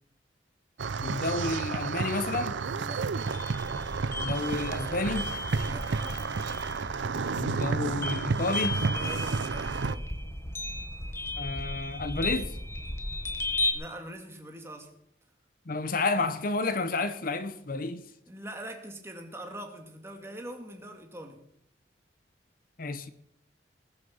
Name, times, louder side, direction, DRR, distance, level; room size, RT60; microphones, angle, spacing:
sound 1, 0.8-10.0, right 4 dB, 80° right, 0.6 m, -31 dB
voice 1, 1.0-2.6 4.2-5.3 7.4-8.8 11.4-12.6 15.7-18.0 22.8-23.1, left 3 dB, 50° left, 0.8 m, -30 dB
voice 2, 2.7-3.1 5.6-6.2 8.8-10.1 13.7-14.9 18.3-21.4, right 1 dB, 15° right, 2.2 m, -43 dB
sound 2, 3.2-13.7, left 2 dB, 15° left, 1.4 m, -35 dB
20.0 x 6.7 x 7.1 m
head